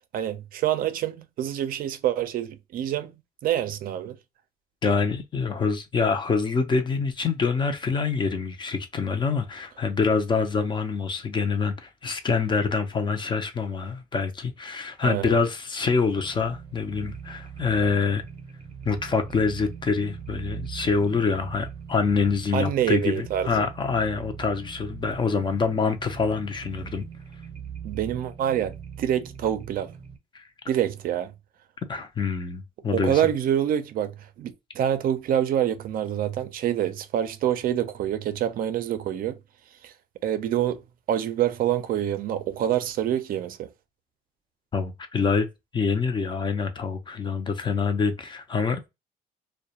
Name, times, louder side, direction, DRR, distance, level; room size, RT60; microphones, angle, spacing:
voice 1, 0.1-3.1 3.4-4.2 15.0-15.4 22.5-23.6 27.8-29.9 30.7-31.3 32.9-39.4 39.8-39.9 40.2-40.8 41.1-43.7, right 10 dB, 60° right, 0.4 m, -26 dB
voice 2, 4.8-18.2 18.8-27.1 30.3-30.5 31.9-33.2 44.7-45.5 45.7-48.9, left 5 dB, 25° left, 0.5 m, -26 dB
sound 1, 16.1-30.2, right 7 dB, 30° right, 0.7 m, -41 dB
2.3 x 2.1 x 2.8 m
cardioid pair, 110°, 17 cm